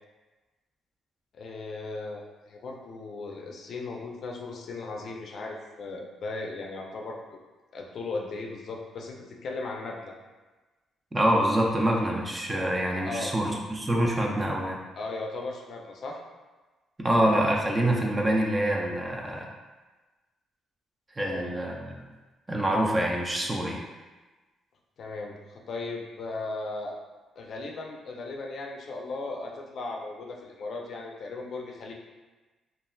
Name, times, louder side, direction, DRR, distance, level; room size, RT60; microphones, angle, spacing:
voice 1, 1.3-7.4 7.7-10.1 13.0-13.3 14.9-16.2 21.3-21.6 25.0-26.9 27.4-31.9, left 3 dB, 60° left, 1 dB, 0.4 m, -37 dB
voice 2, 11.1-14.8 17.0-19.5 21.2-22.0 22.5-23.8, right 1 dB, 20° right, -1 dB, 0.4 m, -26 dB
3.0 x 2.3 x 2.3 m, 1.2 s
cardioid pair, 90°, 0 cm